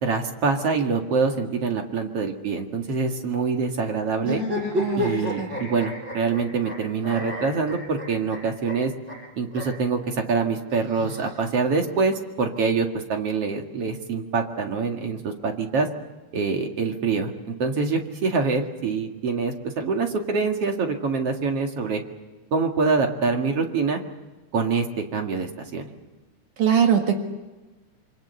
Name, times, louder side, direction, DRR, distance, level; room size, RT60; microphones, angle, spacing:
voice 1, 0.0-4.4 5.0-8.9 9.4-15.9 16.3-22.0 22.5-24.0 24.5-25.9, right 4 dB, 50° right, 3 dB, 2.8 m, -25 dB
sound 1, 4.2-6.7 7.0-8.4 8.7-8.8 9.1-9.2 9.5-9.6 10.7-11.7, left 1 dB, 20° right, 7.2 m, -30 dB
voice 2, 4.8-5.1 5.4-5.5 26.6-27.2, right 8 dB, 75° right, 4 dB, 3.3 m, -21 dB
27.5 x 25.0 x 6.9 m, 1.2 s
omnidirectional pair, 3.6 m